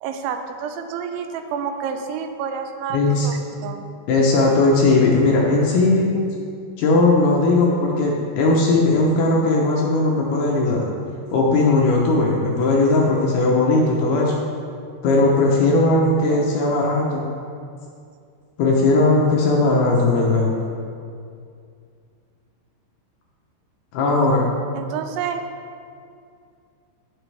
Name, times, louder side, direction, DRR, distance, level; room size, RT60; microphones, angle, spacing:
voice 1, 0.0-3.9 24.8-25.4, right 7 dB, 85° right, 7 dB, 2.9 m, -29 dB
voice 2, 2.9-3.3 4.1-6.1 6.8-10.8 11.3-14.3 15.0-17.3 18.6-20.5 23.9-24.4, left 2 dB, 75° left, -2 dB, 2.5 m, -18 dB
17.5 x 5.8 x 3.4 m, 2.3 s
omnidirectional pair, 5.3 m